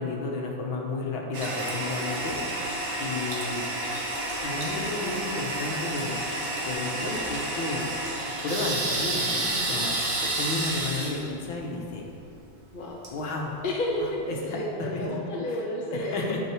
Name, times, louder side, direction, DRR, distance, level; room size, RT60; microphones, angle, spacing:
voice 1, 0.0-2.4 3.0-3.6 4.4-6.2 6.6-7.8 8.4-12.0 13.1-13.6 14.3-15.1 15.5-15.6 15.9-16.4, left 3 dB, 85° left, 0 dB, 2.1 m, -32 dB
Toilet flush, 1.3-14.0, right 1 dB, 60° right, 2.1 m, -31 dB
voice 2, 13.6-16.3, left 1 dB, 35° left, -3 dB, 0.8 m, -31 dB
11.0 x 6.8 x 4.9 m, 2.6 s
omnidirectional pair, 2.1 m